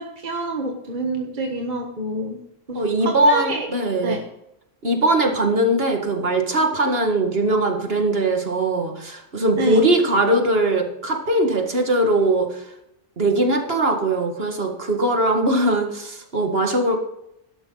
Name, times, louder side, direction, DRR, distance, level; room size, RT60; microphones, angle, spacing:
voice 1, 0.0-2.4 2.7-3.7 4.0-4.2 9.6-9.8, right 2 dB, 45° right, 2 dB, 1.6 m, -27 dB
voice 2, 2.7-4.2 4.8-12.6 13.2-17.0, right 1 dB, 60° right, 3 dB, 2.2 m, -20 dB
13.0 x 12.0 x 4.0 m, 0.83 s
omnidirectional pair, 1.1 m